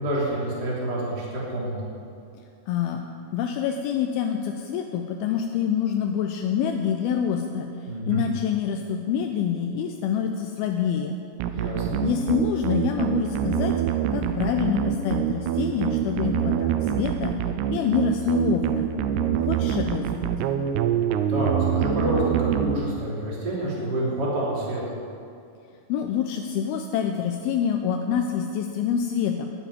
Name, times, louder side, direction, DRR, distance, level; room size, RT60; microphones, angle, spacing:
voice 1, 0.0-1.9 7.9-8.3 11.5-12.0 21.2-24.8, right 1 dB, 25° right, -6 dB, 3.0 m, -28 dB
voice 2, 2.7-3.0 3.3-11.2 12.0-13.8 14.1-17.3 17.7-18.9 19.4-20.3 25.9-29.5, left 8 dB, 85° left, 4 dB, 2.2 m, -26 dB
sound 1, 11.4-23.3, right 9 dB, 80° right, 2.5 m, -25 dB
12.0 x 7.0 x 9.7 m, 2.5 s
omnidirectional pair, 5.0 m